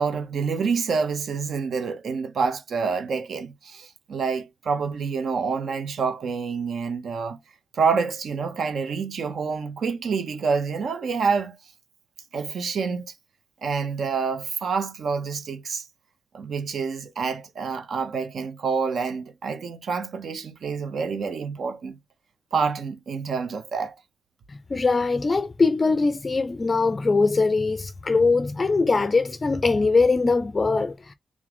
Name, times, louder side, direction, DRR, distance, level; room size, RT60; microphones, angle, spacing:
voice 1, 0.0-7.4 7.7-11.6 12.3-13.1 13.6-15.9 16.3-22.0 22.5-23.9, right 5 dB, 65° right, 0.7 m, -27 dB
voice 2, 24.5-31.1, left 3 dB, 30° left, 0.4 m, -22 dB
3.7 x 3.6 x 3.4 m
wide cardioid pair, 145°, 0 cm